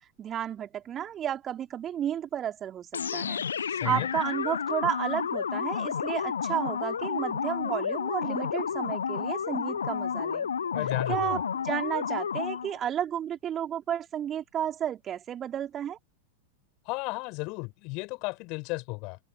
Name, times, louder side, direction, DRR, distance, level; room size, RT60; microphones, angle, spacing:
voice 1, 0.2-10.5 11.1-16.0, right 10 dB, 25° right, 4.0 m, -32 dB
sound 1, 2.9-12.8, left 7 dB, 70° left, 0.9 m, -31 dB
voice 2, 3.7-4.1 10.7-11.4 16.8-19.2, left 27 dB, 45° left, 5.3 m, -34 dB
figure-of-eight pair, 90°, 0 cm